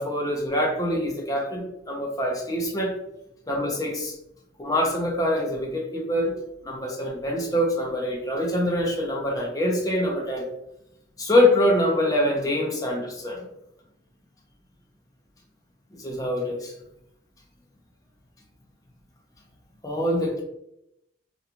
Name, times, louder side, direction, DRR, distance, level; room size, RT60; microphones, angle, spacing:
voice 1, 0.0-2.9 3.5-4.1 4.6-6.3 6.6-10.5 11.2-13.5 15.9-16.7 19.8-20.4, left 1 dB, 20° left, -1 dB, 0.5 m, -24 dB
2.5 x 2.2 x 2.9 m, 0.82 s
head